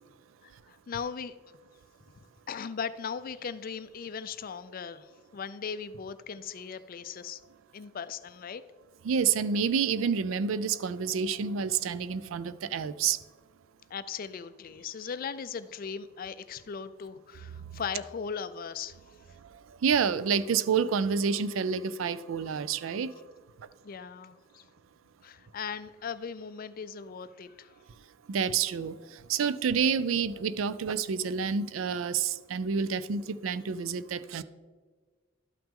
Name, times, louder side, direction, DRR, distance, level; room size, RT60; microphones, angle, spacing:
voice 1, 0.4-1.3 2.5-7.4 7.7-8.6 13.9-19.0 23.8-24.6 25.2-27.7, left 6 dB, 45° left, 14 dB, 0.4 m, -38 dB
voice 2, 9.0-13.2 19.8-23.1 28.3-34.4, right 6 dB, 85° right, 15 dB, 0.4 m, -28 dB
12.0 x 5.8 x 3.7 m, 1.4 s
head